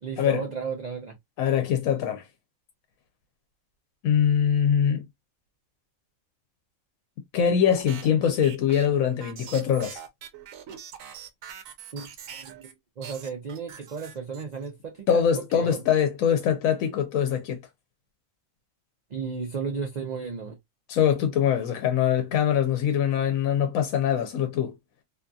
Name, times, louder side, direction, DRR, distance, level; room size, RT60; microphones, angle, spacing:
voice 1, 0.0-1.2 11.9-12.1 12.4-12.7 13.0-15.8 19.1-20.6, right 5 dB, 60° right, 0.4 m, -34 dB
voice 2, 1.4-2.2 4.0-5.1 7.3-10.0 15.1-17.6 20.9-24.7, left 8 dB, 90° left, 1.0 m, -23 dB
sound 1, 7.7-12.7 13.0-14.7, right 8 dB, 75° right, 1.0 m, -43 dB
2.7 x 2.3 x 2.5 m
omnidirectional pair, 1.4 m